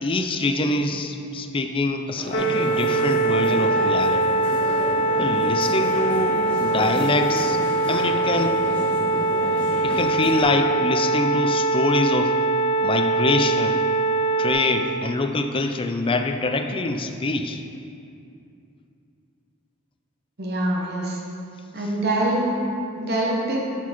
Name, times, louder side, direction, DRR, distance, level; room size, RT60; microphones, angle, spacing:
voice 1, 0.0-4.3 5.2-7.6 7.9-8.6 9.8-12.4 12.8-13.9 14.4-17.6, left 2 dB, 25° left, 6 dB, 0.4 m, -25 dB
sound 1, 2.1-10.4, equal, 5° left, 1.3 m, -32 dB
sound 2, 2.3-14.5, right 2 dB, 70° left, 0.7 m, -22 dB
voice 2, 20.4-21.2 21.7-22.5 23.0-23.6, right 1 dB, 50° right, -3 dB, 1.0 m, -24 dB
10.5 x 4.5 x 4.3 m, 2.6 s
head